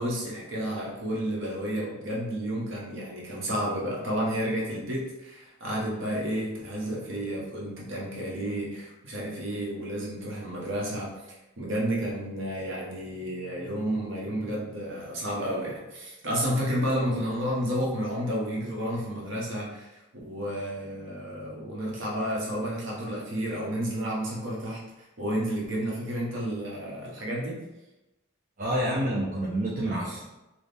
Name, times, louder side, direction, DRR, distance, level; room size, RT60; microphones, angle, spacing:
voice 1, 0.0-11.1 11.6-24.8 25.2-27.6, equal, 60° right, -4 dB, 1.1 m, -31 dB
voice 2, 28.6-30.2, right 1 dB, 40° right, -7 dB, 0.5 m, -28 dB
4.1 x 2.4 x 3.4 m, 1.0 s
head